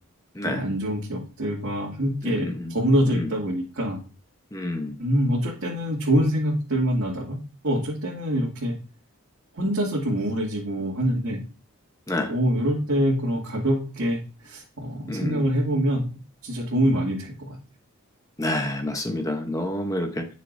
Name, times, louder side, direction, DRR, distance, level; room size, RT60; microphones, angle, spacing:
voice 1, 0.4-4.0 5.0-7.4 7.6-8.8 9.5-11.4 12.3-16.1 16.4-17.6, equal, 65° right, -5 dB, 2.4 m, -25 dB
voice 2, 2.2-2.7 3.1-3.3 4.5-5.0 12.1-12.3 15.1-15.4 18.4-20.3, left 1 dB, 15° left, 5 dB, 0.9 m, -28 dB
11.5 x 6.6 x 2.7 m, 0.36 s
head